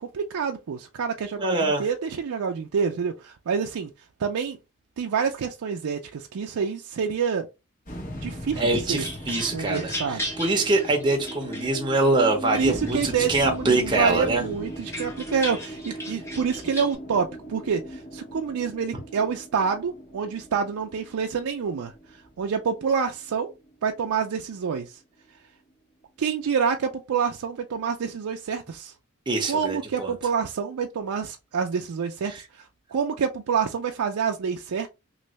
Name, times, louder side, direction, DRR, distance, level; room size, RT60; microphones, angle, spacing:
voice 1, 0.0-3.9 4.2-4.6 5.0-7.5 8.2-9.0 9.5-10.2 12.5-21.9 22.4-23.5 23.8-25.0 26.2-28.9 29.5-32.3 32.6-32.7 32.9-34.9, right 6 dB, 80° right, 0.4 m, -27 dB
voice 2, 1.4-1.8 8.6-14.4 29.3-30.1 32.3-32.4, right 2 dB, 20° right, 0.8 m, -24 dB
sound 1, 7.9-24.3, right 1 dB, 40° left, 1.0 m, -38 dB
sound 2, 8.5-12.1 12.5-13.4 13.8-16.9, left 1 dB, 15° left, 0.8 m, -37 dB
3.1 x 2.6 x 3.1 m
head